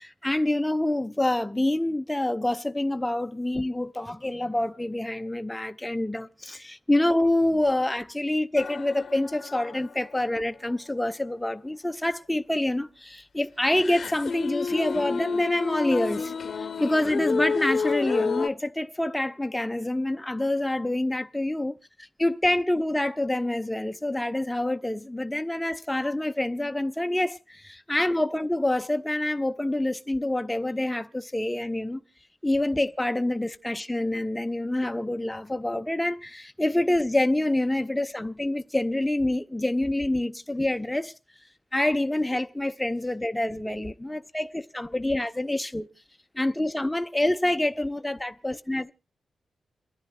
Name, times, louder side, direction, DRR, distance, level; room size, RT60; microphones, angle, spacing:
voice 1, 0.0-21.8 22.2-32.0 32.4-41.1 41.7-45.9 46.3-48.9, left 1 dB, 5° left, 0.7 m, -27 dB
sound 1, 8.6-10.4 10.7-10.9 13.7-18.5, left 5 dB, 45° left, 0.8 m, -30 dB
29.0 x 10.5 x 2.3 m
wide cardioid pair, 145°, 0 cm